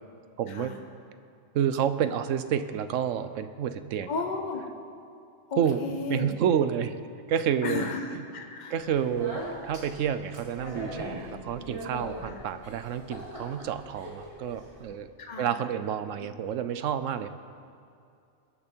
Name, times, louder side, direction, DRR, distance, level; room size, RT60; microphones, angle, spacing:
voice 1, 0.4-0.8 1.5-4.1 5.6-5.8 6.1-7.0 7.3-7.9 8.7-15.1 15.4-17.3, right 8 dB, 85° right, 12 dB, 1.0 m, -29 dB
voice 2, 4.1-4.6 5.5-6.3 7.6-8.8 12.2-12.4 15.2-15.6, left 4 dB, 40° left, 3 dB, 1.2 m, -34 dB
Speech, 8.8-14.8, equal, 25° right, 3.4 m, -41 dB
21.5 x 8.5 x 4.5 m, 2.5 s
omnidirectional pair, 1.3 m